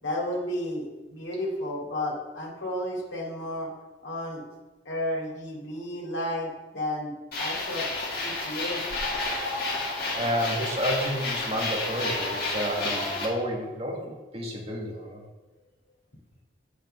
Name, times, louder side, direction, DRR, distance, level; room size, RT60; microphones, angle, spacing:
voice 1, 0.0-3.7 4.0-4.4 4.9-7.9 8.2-8.8, left 1 dB, 85° left, -2 dB, 2.2 m, -32 dB
sound 1, 7.3-13.2, left 2 dB, 55° left, 2.0 m, -30 dB
voice 2, 10.1-15.2, equal, 30° right, -2 dB, 1.6 m, -30 dB
8.7 x 5.0 x 5.5 m, 1.2 s
head